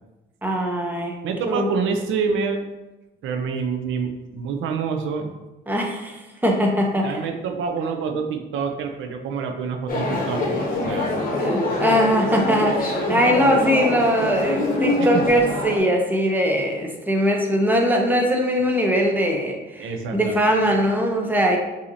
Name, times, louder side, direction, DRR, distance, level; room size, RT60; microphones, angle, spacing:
voice 1, 0.4-1.2 1.4-1.7 5.7-7.2 11.4-21.6, equal, 10° right, 1 dB, 0.8 m, -21 dB
voice 2, 1.2-2.7 3.2-5.3 7.0-11.3 11.7-11.8 13.5-13.8 15.0-15.2 19.8-20.5, right 5 dB, 80° right, 5 dB, 0.5 m, -27 dB
sound 1, 9.9-15.8, left 2 dB, 45° left, 0.9 m, -24 dB
5.6 x 2.8 x 2.7 m, 1.1 s
cardioid pair, 90°, 20 cm